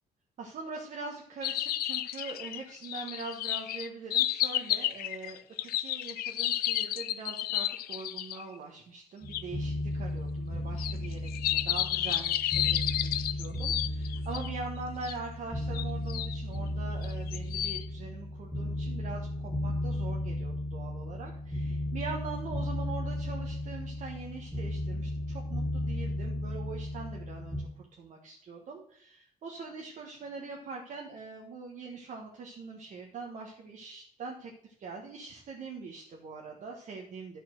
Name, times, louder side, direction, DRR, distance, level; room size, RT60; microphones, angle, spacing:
voice 1, 0.4-37.4, right 4 dB, 55° right, 0 dB, 1.3 m, -43 dB
sound 1, 1.4-8.4 9.3-9.4 10.8-14.5 15.0-15.1 15.7-16.4 17.0-17.8, left 13 dB, 75° left, 0.5 m, -31 dB
sound 2, 9.2-27.6, left 1 dB, 5° left, 1.6 m, -35 dB
11.0 x 4.4 x 6.3 m, 0.63 s
cardioid pair, 130°, 16 cm